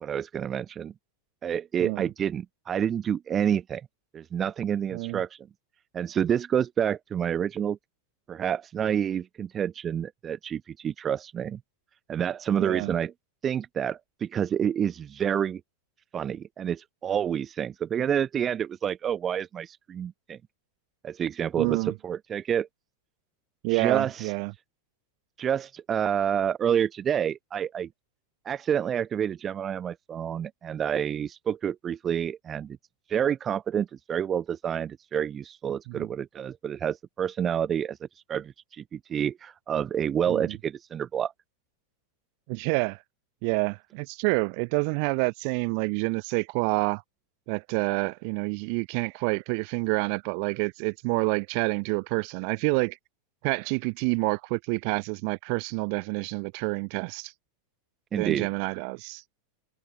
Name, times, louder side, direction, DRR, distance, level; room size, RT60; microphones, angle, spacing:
voice 1, 0.0-0.9 1.4-3.8 4.1-5.4 5.9-7.8 8.3-11.6 12.1-13.1 13.4-15.6 16.1-20.4 21.0-21.8 22.0-22.7 23.7-24.1 25.4-27.9 28.4-32.8 33.1-38.0 38.3-41.3 58.1-58.5, right 8 dB, 25° right, 1.0 m, -28 dB
voice 2, 4.9-5.2 12.6-12.9 21.6-21.9 23.6-24.5 35.9-36.1 40.3-40.5 42.5-43.0 43.4-47.0 47.5-53.0 53.4-57.3 58.1-59.2, right 40 dB or more, 45° right, 0.6 m, -28 dB
figure-of-eight pair, 90°, 0 cm